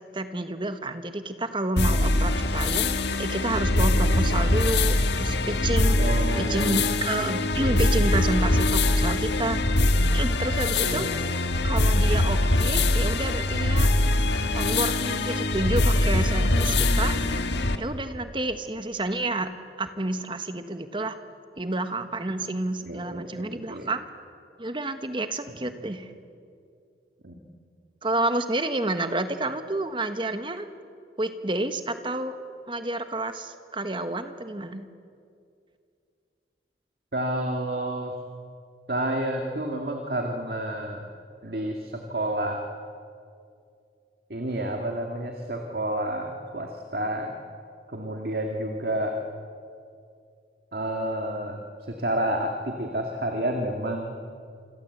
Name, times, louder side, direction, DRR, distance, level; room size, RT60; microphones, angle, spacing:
voice 1, 0.1-6.0 6.4-9.6 10.1-13.9 14.5-17.2 17.8-19.5 19.8-21.2 21.6-24.1 24.6-26.1 28.0-30.7 31.2-32.3 32.7-34.9, right 2 dB, 25° right, 9 dB, 1.4 m, -29 dB
sound 1, 1.8-17.8, left 2 dB, 75° left, 1.6 m, -23 dB
voice 2, 6.0-6.7 10.8-11.1 16.4-16.7 22.9-23.9 27.2-27.4 37.1-38.1 38.9-41.0 41.4-42.7 44.3-47.3 47.9-49.2 50.7-51.6 51.9-54.2, right 1 dB, 55° right, 3 dB, 2.1 m, -30 dB
27.5 x 26.5 x 8.0 m, 2.4 s
head